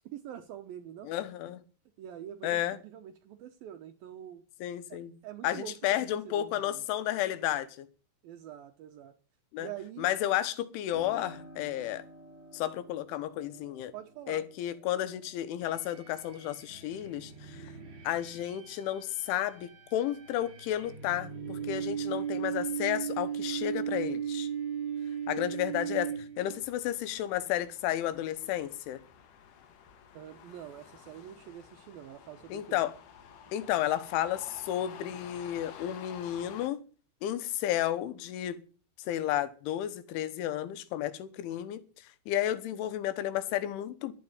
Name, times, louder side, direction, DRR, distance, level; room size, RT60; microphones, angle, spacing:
voice 1, 0.1-1.1 2.0-4.4 4.9-5.7 6.1-6.8 8.2-9.1 9.6-10.1 13.9-14.5 30.1-32.8, right 10 dB, 75° right, 2.3 m, -45 dB
voice 2, 1.0-1.6 2.4-2.8 4.6-5.1 5.4-7.9 9.5-9.7 10.0-12.0 12.5-13.9 14.3-17.7 18.1-24.5 25.3-29.0 32.5-33.0 33.5-36.8 37.2-38.6 39.0-44.1, left 12 dB, 90° left, 3.6 m, -32 dB
Piano, 10.9-19.4 19.8-20.8, equal, 15° left, 2.8 m, -54 dB
sound 1, 15.6-26.7, right 8 dB, 30° right, 2.8 m, -37 dB
sound 2, 26.5-36.7, left 8 dB, 60° left, 2.5 m, -52 dB
12.0 x 9.5 x 9.4 m
omnidirectional pair, 5.3 m